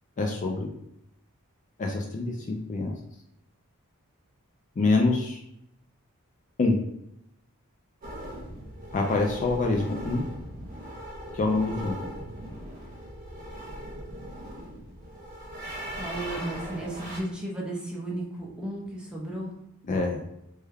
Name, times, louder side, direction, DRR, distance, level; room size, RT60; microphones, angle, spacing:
voice 1, 0.2-0.7 1.8-2.9 4.8-5.4 6.6-6.8 8.9-10.2 11.3-11.9 19.9-20.2, left 3 dB, 35° left, 1 dB, 0.3 m, -25 dB
sound 1, 8.0-17.2, equal, 40° right, 0.9 m, -39 dB
voice 2, 15.9-19.6, right 1 dB, 5° right, -3 dB, 0.6 m, -34 dB
3.3 x 2.2 x 3.3 m, 0.79 s
head